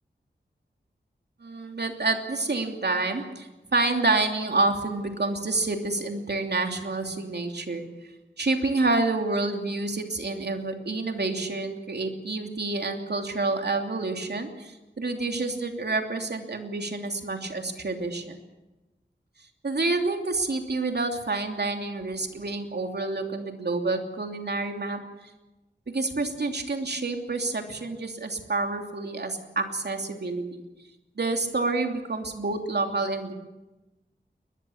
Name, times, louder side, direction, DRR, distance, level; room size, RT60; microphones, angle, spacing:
voice 1, 1.4-7.9 8.4-18.4 19.6-25.0 25.9-30.6 31.2-33.3, right 3 dB, 60° right, 4 dB, 3.1 m, -28 dB
21.5 x 20.5 x 7.3 m, 1.1 s
wide cardioid pair, 55°, 19 cm